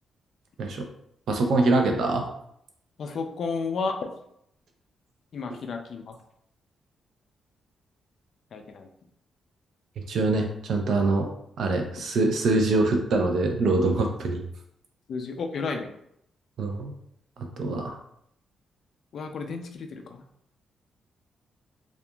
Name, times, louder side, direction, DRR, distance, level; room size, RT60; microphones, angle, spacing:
voice 1, 1.3-2.2 10.1-11.3 11.6-14.4 16.6-16.9 17.6-18.0, right 2 dB, 65° right, 3 dB, 0.5 m, -24 dB
voice 2, 3.0-4.1 5.3-6.2 8.5-8.9 15.1-15.9 19.1-20.2, left 4 dB, 60° left, 4 dB, 0.3 m, -32 dB
2.7 x 2.4 x 2.2 m, 0.73 s
cardioid pair, 110°, 0 cm